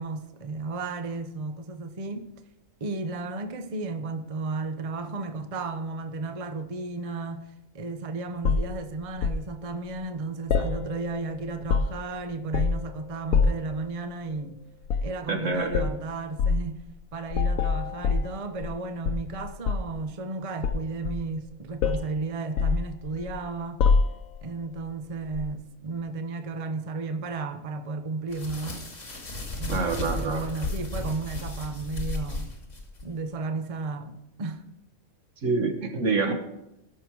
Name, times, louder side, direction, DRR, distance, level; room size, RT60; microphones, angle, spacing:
voice 1, 0.0-2.3 2.8-7.5 7.7-14.6 15.0-16.8 17.1-23.8 24.4-28.8 29.5-32.5 33.0-34.6, right 3 dB, 30° right, 0.8 m, -33 dB
sound 1, 8.4-9.4 10.5-11.2 11.5-12.1 12.5-12.9 13.3-13.7 14.8-15.2 15.7-16.0 16.4-16.6 17.3-18.8 19.0-20.0 20.6-21.5 21.8-22.1 22.6-23.4 23.8-24.4 25.3-25.5, left 5 dB, 85° left, 1.1 m, -25 dB
voice 2, 15.3-15.9 29.7-30.5 35.4-36.3, right 4 dB, 70° right, 1.7 m, -27 dB
sound 2, 28.3-33.1, left 2 dB, 70° left, 2.7 m, -34 dB
18.0 x 6.5 x 4.6 m
omnidirectional pair, 1.4 m